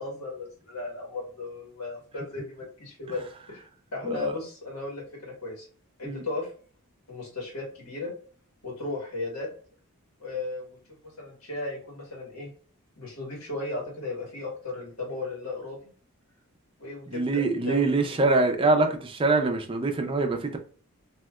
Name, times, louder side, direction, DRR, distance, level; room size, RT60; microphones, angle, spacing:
voice 1, 0.0-3.6 3.9-5.6 6.0-6.5 7.1-8.1 8.6-9.5 10.2-10.8 11.0-12.5 13.0-15.8 16.8-17.9, left 2 dB, 85° left, 1.5 m, -35 dB
voice 2, 17.1-20.6, right 3 dB, 25° right, 0.5 m, -24 dB
3.2 x 2.7 x 2.3 m
head